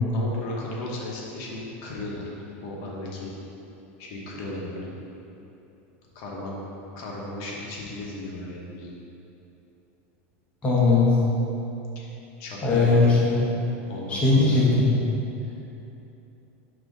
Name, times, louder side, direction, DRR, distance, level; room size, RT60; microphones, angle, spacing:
voice 1, 0.1-2.2 2.6-3.3 4.0-4.9 6.1-6.6 7.0-9.0 11.9-12.1 12.4-13.1 13.9-14.6, left 2 dB, 50° left, -3 dB, 1.0 m, -35 dB
voice 2, 10.6-11.2 12.6-13.4 14.1-14.9, left 3 dB, 15° left, -6 dB, 1.0 m, -19 dB
5.5 x 3.7 x 5.3 m, 2.9 s
supercardioid pair, 155°, 7 cm